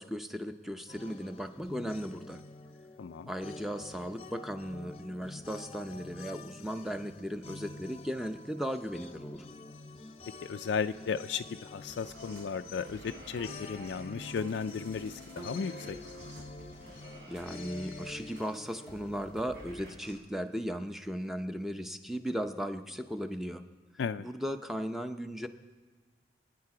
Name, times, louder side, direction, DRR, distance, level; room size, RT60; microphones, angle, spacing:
voice 1, 0.0-2.4 3.3-9.5 17.3-23.6 24.2-25.5, equal, ahead, 7 dB, 0.6 m, -37 dB
sound 1, 0.9-20.0, left 2 dB, 35° left, 0.7 m, -48 dB
voice 2, 3.0-3.3 10.4-16.0 24.0-24.3, left 6 dB, 75° left, 8 dB, 0.4 m, -35 dB
sound 2, 12.0-20.2, equal, 85° right, 4.0 m, -51 dB
27.5 x 9.5 x 4.9 m, 1.3 s
head